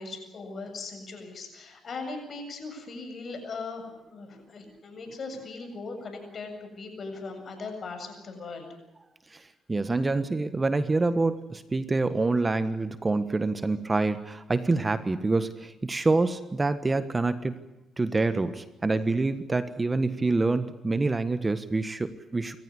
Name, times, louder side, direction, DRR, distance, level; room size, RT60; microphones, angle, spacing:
voice 1, 0.0-8.7, left 3 dB, 50° left, 5 dB, 7.5 m, -39 dB
voice 2, 9.7-17.5 18.0-22.6, right 3 dB, 20° right, 12 dB, 1.4 m, -26 dB
27.5 x 14.5 x 10.0 m, 1.0 s
cardioid pair, 90°, 0 cm